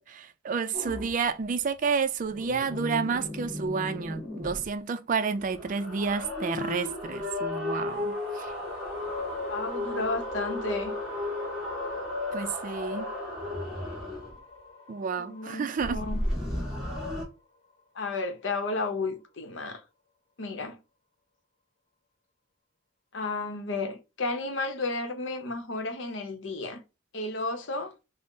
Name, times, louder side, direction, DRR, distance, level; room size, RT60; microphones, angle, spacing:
voice 1, 0.0-8.5 12.3-13.1 14.9-16.0, right 5 dB, 45° right, 0.3 m, -30 dB
sound 1, 0.7-1.1 2.2-4.7 5.4-14.4 15.8-17.3, left 2 dB, ahead, 1.2 m, -34 dB
sound 2, 7.8-19.6, left 3 dB, 35° left, 1.0 m, -50 dB
voice 2, 9.4-11.0 15.2-16.2 17.9-19.8 20.4-20.8 23.1-26.8 27.1-27.9, left 3 dB, 70° left, 0.7 m, -33 dB
3.6 x 2.0 x 3.7 m
head